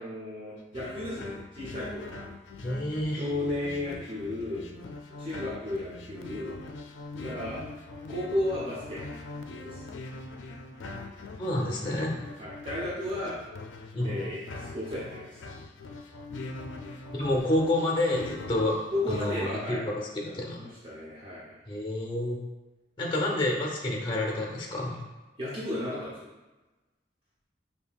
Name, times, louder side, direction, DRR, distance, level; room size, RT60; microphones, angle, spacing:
voice 1, 0.0-2.3 3.2-4.6 5.2-6.6 7.2-7.6 8.1-9.0 9.6-9.8 12.4-13.3 14.0-15.4 18.9-19.8 20.2-21.6 25.4-26.3, left 1 dB, 30° right, -8 dB, 0.8 m, -34 dB
sound 1, 0.7-19.3, left 2 dB, 85° left, 0.4 m, -42 dB
voice 2, 2.6-3.3 11.4-12.2 13.9-14.2 17.1-18.8 19.1-19.8 20.1-20.6 21.7-22.4 23.0-25.0, left 1 dB, 25° left, -1 dB, 0.7 m, -28 dB
5.4 x 2.8 x 2.3 m, 1.1 s
head